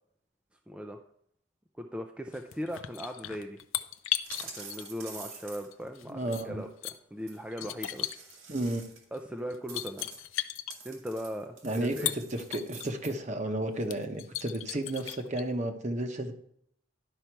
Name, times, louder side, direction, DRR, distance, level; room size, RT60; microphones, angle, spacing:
voice 1, 0.7-1.0 1.8-3.6 4.4-8.1 9.1-10.1 10.8-12.1, equal, 5° right, 3 dB, 0.4 m, -38 dB
sound 1, 2.3-5.1 5.7-6.9 7.5-8.4 9.1-9.2 9.5-10.8 11.8-12.9 13.4-13.5 13.8-15.4, left 13 dB, 75° left, 0.5 m, -36 dB
sound 2, 4.2-5.9 7.3-7.4 7.9-9.2 9.7-13.1, right 5 dB, 85° right, 2.1 m, -47 dB
voice 2, 6.0-6.6 8.5-8.8 11.6-16.3, right 1 dB, 35° right, 6 dB, 0.9 m, -32 dB
11.5 x 5.6 x 4.6 m, 0.69 s
head